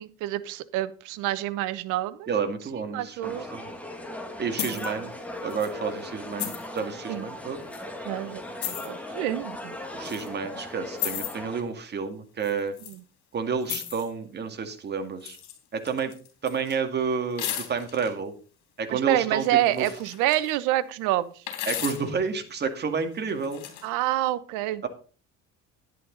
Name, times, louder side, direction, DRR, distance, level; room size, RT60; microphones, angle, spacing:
voice 1, 0.0-2.3 2.9-3.5 4.7-4.8 7.1-7.2 8.0-8.4 8.7-9.7 12.9-13.0 18.9-21.3 23.8-24.8, right 14 dB, 90° right, 15 dB, 1.0 m, -27 dB
voice 2, 2.3-3.7 4.4-5.1 5.4-7.6 9.9-12.7 13.3-15.4 15.7-16.1 16.4-18.3 18.8-19.5 19.7-19.9 21.7-23.7 24.8-24.9, right 5 dB, 35° right, 6 dB, 2.2 m, -30 dB
sound 1, 3.2-11.6, left 1 dB, 5° left, 2.4 m, -38 dB
sound 2, 4.6-4.9 5.5-5.7 6.4-6.8 7.7-7.8 8.6-8.9 10.1-10.3 11.0-11.4 12.4-13.0 13.6-14.1 15.2-15.6 15.8-16.8 17.4-18.1 19.4-20.5 21.5-22.1 23.3-23.9, left 11 dB, 70° left, 3.8 m, -34 dB
11.5 x 10.5 x 4.0 m, 0.39 s
cardioid pair, 120°, 30 cm